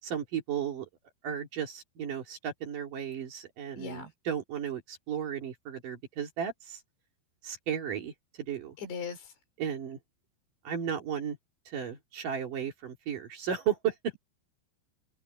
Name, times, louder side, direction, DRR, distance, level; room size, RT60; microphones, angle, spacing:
voice 1, 0.0-0.9 1.2-6.8 7.4-8.8 9.6-10.0 10.6-11.4 11.7-14.1, right 8 dB, 50° right, 3.6 m, -34 dB
voice 2, 3.7-4.1 8.8-9.4, left 5 dB, 65° left, 7.2 m, -39 dB
omnidirectional pair, 5.5 m